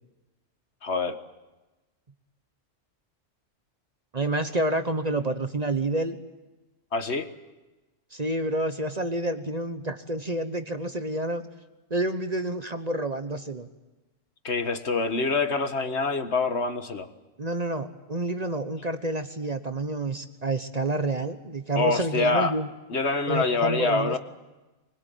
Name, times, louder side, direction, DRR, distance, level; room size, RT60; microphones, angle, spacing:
voice 1, 0.8-1.2 6.9-7.3 14.4-17.1 21.8-22.5 22.9-24.2, left 3 dB, 60° left, 8 dB, 1.7 m, -25 dB
voice 2, 4.1-6.2 8.1-11.4 11.9-13.7 17.4-22.7 23.3-24.2, right 2 dB, 35° right, 8 dB, 1.2 m, -29 dB
25.5 x 20.5 x 9.3 m, 1.1 s
omnidirectional pair, 1.3 m